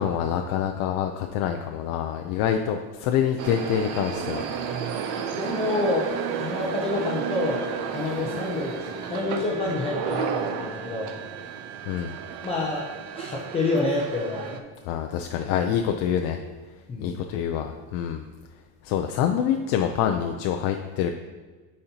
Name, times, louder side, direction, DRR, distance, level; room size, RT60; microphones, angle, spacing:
voice 1, 0.0-4.4 11.9-12.1 14.9-16.4 17.0-18.3 18.8-21.1, left 9 dB, 65° left, 4 dB, 0.5 m, -26 dB
sound 1, 3.4-14.6, right 7 dB, 65° right, 0.6 m, -32 dB
voice 2, 5.3-6.1 6.4-7.6 7.9-11.1 12.4-12.9 13.2-14.6 16.9-17.3, left 2 dB, 15° left, -4 dB, 0.5 m, -28 dB
8.7 x 4.3 x 2.8 m, 1.3 s
cardioid pair, 170°, 35 cm